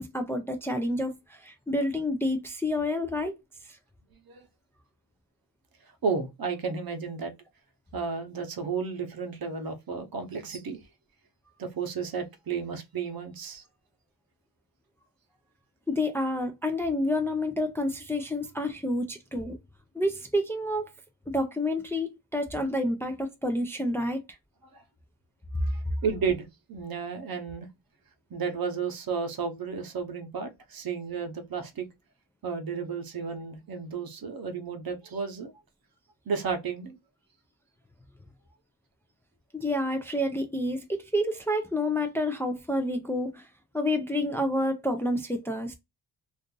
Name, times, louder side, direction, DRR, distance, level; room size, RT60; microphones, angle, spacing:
voice 1, 0.0-3.3 15.9-19.6 19.9-20.9 21.3-24.2 39.5-43.5 43.7-45.7, left 1 dB, 5° left, 0.4 m, -29 dB
voice 2, 6.0-7.3 7.9-10.8 11.6-13.6 24.6-24.8 25.6-27.7 28.3-31.9 32.4-35.5 36.3-37.0, right 5 dB, 55° right, 0.9 m, -33 dB
2.5 x 2.5 x 3.7 m
wide cardioid pair, 125°, 42 cm